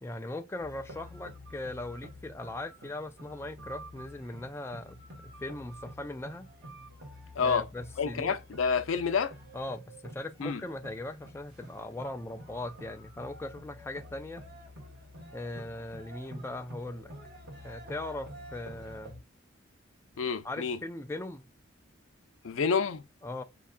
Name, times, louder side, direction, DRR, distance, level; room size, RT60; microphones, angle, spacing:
voice 1, 0.0-5.0 5.2-6.5 7.4-8.4 9.5-14.4 15.3-17.1 17.6-19.2 20.4-21.5 23.2-23.4, left 2 dB, 15° left, 0.3 m, -39 dB
sound 1, 0.6-19.2, equal, 55° right, 1.5 m, -49 dB
voice 2, 8.0-9.3 10.4-10.6 20.2-20.8 22.4-23.0, left 5 dB, 85° left, 0.5 m, -28 dB
5.3 x 2.3 x 2.4 m
head